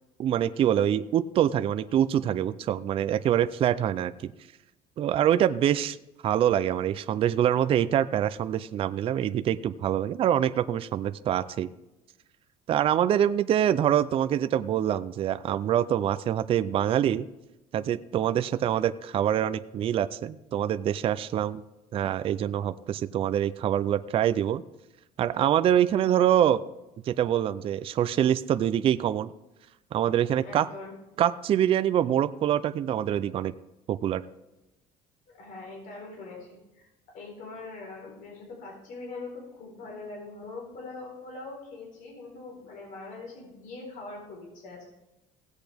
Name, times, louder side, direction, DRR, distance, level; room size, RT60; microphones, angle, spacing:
voice 1, 0.2-4.3 5.0-6.0 6.2-11.7 12.7-17.3 17.7-21.6 21.9-24.6 25.2-26.6 27.1-29.3 29.9-30.7 31.2-33.5 33.9-34.2, right 10 dB, 40° right, 12 dB, 0.4 m, -25 dB
voice 2, 30.4-30.9 35.4-36.9 37.1-44.9, left 3 dB, 65° left, -1 dB, 4.2 m, -42 dB
17.0 x 8.1 x 3.5 m, 0.98 s
cardioid pair, 145°, 15 cm